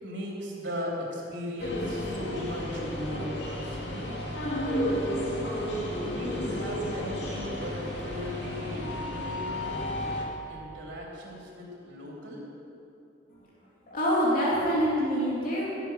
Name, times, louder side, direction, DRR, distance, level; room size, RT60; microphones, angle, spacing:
voice 1, 0.0-4.2 5.9-9.8 10.5-12.5, equal, 80° right, -3 dB, 3.5 m, -37 dB
sound 1, 1.6-10.3, left 1 dB, 75° left, 2.2 m, -32 dB
voice 2, 13.9-15.7, equal, 50° left, -7 dB, 2.7 m, -25 dB
16.0 x 8.4 x 6.4 m, 2.7 s
head